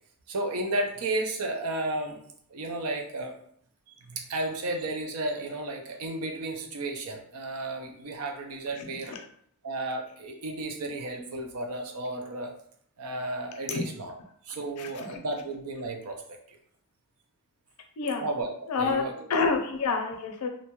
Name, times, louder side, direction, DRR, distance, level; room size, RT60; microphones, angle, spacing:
voice 1, 0.3-2.2 2.5-3.4 3.9-9.1 9.6-12.5 13.0-14.1 14.4-16.2 18.2-18.5 18.8-19.1, right 2 dB, 75° right, 2 dB, 0.5 m, -33 dB
voice 2, 8.8-9.2 13.7-13.8 14.8-15.2 18.0-18.3 18.7-19.0 19.3-20.5, left 4 dB, 85° left, 5 dB, 0.5 m, -28 dB
2.6 x 2.2 x 2.9 m, 0.64 s
head